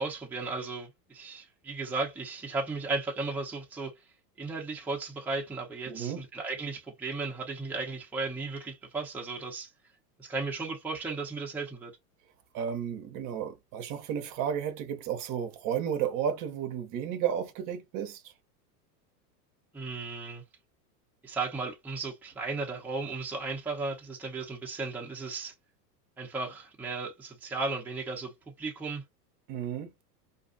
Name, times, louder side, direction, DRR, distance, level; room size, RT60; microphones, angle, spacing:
voice 1, 0.0-3.9 4.4-9.7 10.2-11.9 19.7-20.4 21.2-25.5 26.2-28.3 28.6-29.0, right 3 dB, 5° right, 0.6 m, -35 dB
voice 2, 5.9-6.2 12.5-18.3 29.5-29.9, right 8 dB, 40° right, 0.7 m, -33 dB
2.6 x 2.3 x 2.5 m
hypercardioid pair, 105°, 48 cm